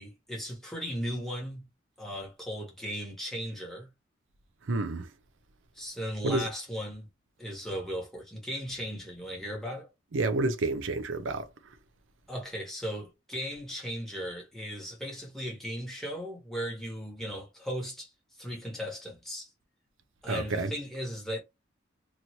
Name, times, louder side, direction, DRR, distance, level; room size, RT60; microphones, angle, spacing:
voice 1, 0.0-1.7 2.0-3.9 5.7-7.1 7.4-9.9 12.3-18.1 18.4-19.5 20.2-21.4, equal, ahead, 1.2 m, -37 dB
voice 2, 4.7-5.1 6.2-6.5 10.1-11.5 20.3-20.7, right 2 dB, 90° right, 0.6 m, -29 dB
3.0 x 2.7 x 2.8 m
head